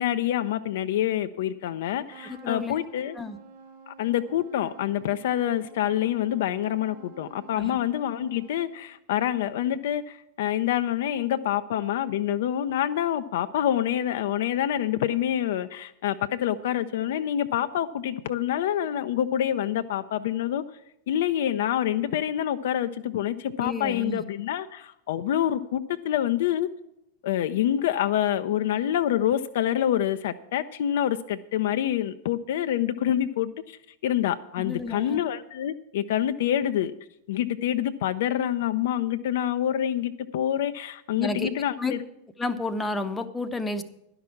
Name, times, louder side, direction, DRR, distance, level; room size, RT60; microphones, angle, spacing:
voice 1, 0.0-3.2 3.9-20.6 21.1-26.7 27.2-36.9 37.3-42.0, left 11 dB, 55° left, 10 dB, 0.4 m, -27 dB
Trumpet, 2.1-9.0, right 6 dB, 50° right, 3.2 m, -50 dB
voice 2, 2.2-2.8 3.2-3.4 7.6-7.8 23.6-24.2 34.6-35.2 41.2-41.5 41.8-41.9 42.4-43.8, left 2 dB, 10° left, 10 dB, 0.7 m, -31 dB
11.0 x 5.9 x 8.3 m, 0.82 s
figure-of-eight pair, 90°, 0 cm